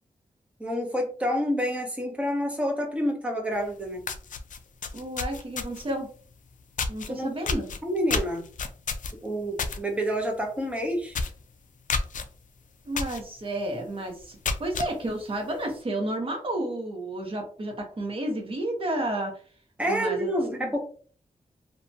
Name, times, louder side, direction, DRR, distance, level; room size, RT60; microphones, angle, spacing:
voice 1, 0.6-4.0 7.1-7.3 7.8-8.4 9.2-11.2 19.8-20.8, equal, 10° right, 1 dB, 0.7 m, -28 dB
sound 1, 3.6-3.7 4.0-5.9 6.8-7.1 7.5-9.8 10.1-10.4 10.7-10.8 11.1-11.4 11.9-12.2 13.0-13.2 13.7-13.8 14.2-14.9, left 4 dB, 65° left, 0.4 m, -30 dB
voice 2, 4.9-6.1 6.9-7.6 12.8-19.4 19.8-20.8, right 1 dB, 40° right, 2 dB, 0.9 m, -31 dB
2.7 x 2.2 x 2.7 m, 0.43 s
wide cardioid pair, 120°, 14 cm